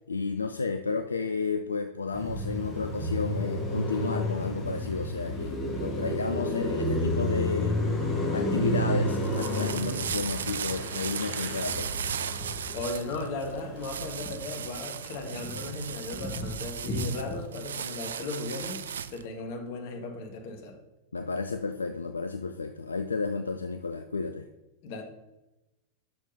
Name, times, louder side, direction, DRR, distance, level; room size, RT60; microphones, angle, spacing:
voice 1, 0.1-7.8 8.3-11.9 21.1-24.4, left 4 dB, 75° left, 7 dB, 0.4 m, -32 dB
Car passing by, 2.1-14.6 14.9-17.4, left 1 dB, 15° left, 2.3 m, -31 dB
sound 1, 9.0-19.3, right 8 dB, 65° right, 0.3 m, -37 dB
voice 2, 12.7-18.8 19.1-20.8 24.8-25.0, left 2 dB, 50° left, 4 dB, 1.5 m, -36 dB
6.2 x 6.1 x 5.4 m, 0.98 s
figure-of-eight pair, 90°, 0 cm